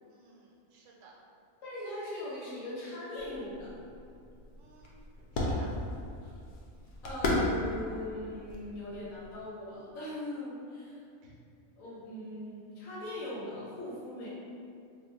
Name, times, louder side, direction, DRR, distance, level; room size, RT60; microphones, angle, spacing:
voice 1, 0.1-1.2 4.6-5.7 11.2-11.4, right 3 dB, 75° right, -2 dB, 0.9 m, -58 dB
voice 2, 1.6-3.7 6.2-6.4 7.0-11.0 11.8-14.3, left 1 dB, 85° left, -9 dB, 1.1 m, -40 dB
sound 1, 3.2-9.5, left 1 dB, 65° left, 0.4 m, -36 dB
2.4 x 2.2 x 3.8 m, 2.5 s
omnidirectional pair, 1.4 m